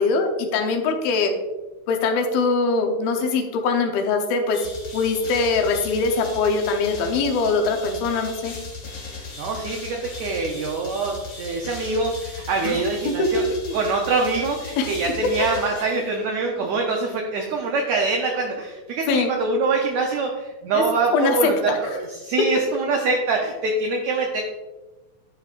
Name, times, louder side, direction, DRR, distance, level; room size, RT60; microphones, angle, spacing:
voice 1, 0.0-1.3 1.9-4.6 4.9-8.5 12.6-12.8 13.1-13.3 13.7-13.8 14.8-14.9 19.1-19.3 20.7-20.8 21.1-21.8, left 4 dB, 85° left, 3 dB, 2.7 m, -22 dB
sound 1, 4.5-16.4, left 3 dB, 50° left, 1.4 m, -38 dB
voice 2, 9.4-13.4 13.7-24.4, right 3 dB, 80° right, 1 dB, 1.6 m, -24 dB
11.0 x 5.2 x 2.4 m, 1.1 s
omnidirectional pair, 4.1 m